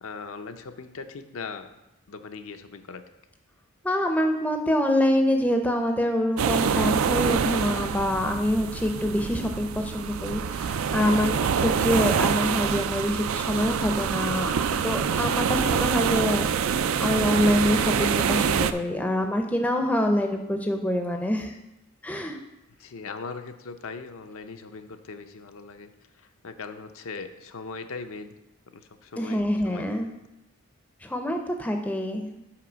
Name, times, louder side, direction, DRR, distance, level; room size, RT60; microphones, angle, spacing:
voice 1, 0.0-1.7 2.1-3.0 22.8-25.9 26.2-28.3 28.7-29.8, left 4 dB, 65° left, 7 dB, 0.5 m, -39 dB
voice 2, 3.8-21.5 22.0-22.4 29.2-30.1 31.0-32.4, left 1 dB, 5° left, 4 dB, 0.5 m, -26 dB
sound 1, 6.4-18.7, right 7 dB, 65° right, 0.4 m, -26 dB
5.9 x 4.7 x 6.1 m, 0.94 s
head